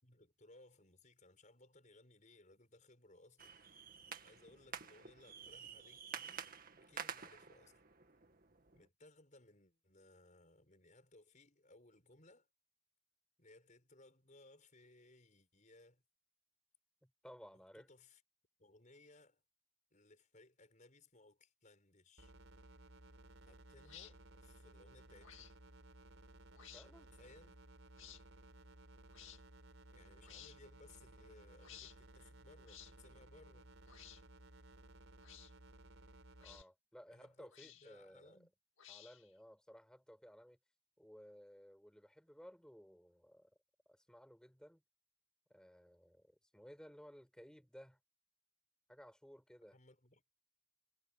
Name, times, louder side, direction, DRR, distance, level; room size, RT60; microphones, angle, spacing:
voice 1, 0.0-3.8 4.2-6.5 6.8-7.7 8.7-12.5 13.4-16.0 17.7-18.2 18.6-19.4 19.9-22.3 23.4-25.5 27.1-27.6 29.9-33.7 37.1-38.5 49.7-50.2, left 2 dB, 35° left, 5.9 m, -64 dB
sound 1, 3.4-8.9, right 7 dB, 45° right, 2.1 m, -50 dB
voice 2, 17.0-17.9 26.7-27.1 36.4-38.4 38.9-40.6 41.0-43.5 43.9-44.8 45.5-48.0 48.9-49.8, equal, 5° left, 5.8 m, -58 dB
sound 2, 22.2-36.6, right 1 dB, 70° right, 4.3 m, -59 dB
sound 3, 23.8-24.1 25.2-25.5 26.5-26.9 28.0-28.2 29.1-29.4 30.2-30.6 31.6-32.0 32.7-32.9 33.9-34.2 35.2-35.5 36.4-36.7 37.5-38.0 38.8-39.3, left 11 dB, 65° left, 2.1 m, -56 dB
head